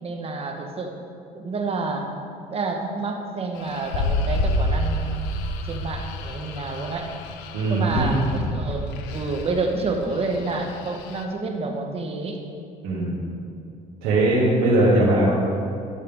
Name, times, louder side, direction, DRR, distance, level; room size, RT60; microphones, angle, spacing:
voice 1, 0.0-0.9 1.3-2.1 2.5-5.2 5.6-7.1 7.7-12.4, right 3 dB, 35° right, 3 dB, 1.2 m, -29 dB
sound 1, 3.6-11.2, left 1 dB, 90° left, 0.7 m, -29 dB
voice 2, 7.5-8.2 12.8-13.1 14.0-15.3, right 1 dB, 90° right, -9 dB, 2.2 m, -20 dB
12.5 x 6.8 x 3.6 m, 2.5 s
cardioid pair, 100°, 17 cm